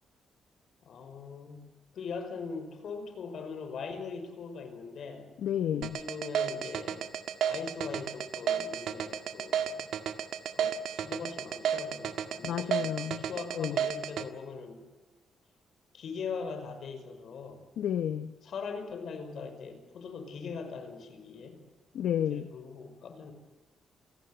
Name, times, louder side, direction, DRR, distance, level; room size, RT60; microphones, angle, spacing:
voice 1, 0.8-1.7 1.9-5.3 5.9-7.1 7.4-10.0 10.5-14.8 15.9-17.6 18.4-21.6 22.3-23.3, left 5 dB, 60° left, 7 dB, 5.5 m, -41 dB
voice 2, 5.4-6.1 12.4-13.2 13.5-13.8 17.8-18.3 21.9-22.5, left 10 dB, 80° left, 11 dB, 0.9 m, -31 dB
sound 1, 5.8-14.2, right 9 dB, 85° right, 1.8 m, -32 dB
29.0 x 19.0 x 8.0 m, 1.2 s
cardioid pair, 145°, 0 cm